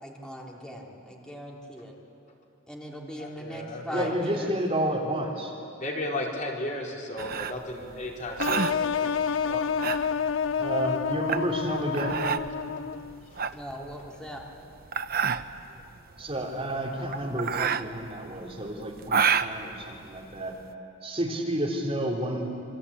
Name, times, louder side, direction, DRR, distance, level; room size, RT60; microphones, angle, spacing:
voice 1, 0.0-1.9 2.7-4.5 13.5-14.4, equal, 5° left, -2 dB, 3.4 m, -39 dB
voice 2, 3.2-4.1 5.8-8.7 13.5-13.6, left 1 dB, 40° left, -1 dB, 4.3 m, -34 dB
voice 3, 3.9-5.5 9.5-9.6 10.6-12.3 16.2-20.6 21.0-22.5, right 1 dB, 30° right, -1 dB, 3.4 m, -30 dB
sound 1, 7.2-20.7, right 6 dB, 50° right, 0.8 m, -30 dB
sound 2, 8.4-13.3, left 6 dB, 70° left, 0.6 m, -29 dB
27.0 x 25.5 x 8.6 m, 2.6 s
head